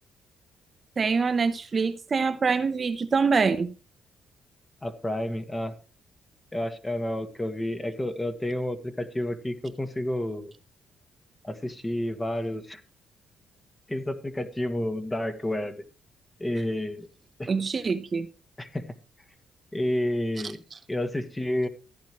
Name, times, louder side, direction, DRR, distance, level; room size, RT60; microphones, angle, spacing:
voice 1, 1.0-3.7 17.5-18.3, right 5 dB, 35° right, 0.9 m, -25 dB
voice 2, 4.8-5.8 6.5-10.5 11.4-12.8 13.9-15.7 16.4-17.1 17.4-17.5 18.6-18.8 19.7-20.6 20.9-21.7, left 1 dB, 15° left, 1.6 m, -30 dB
14.5 x 10.0 x 3.1 m
cardioid pair, 90°, 0 cm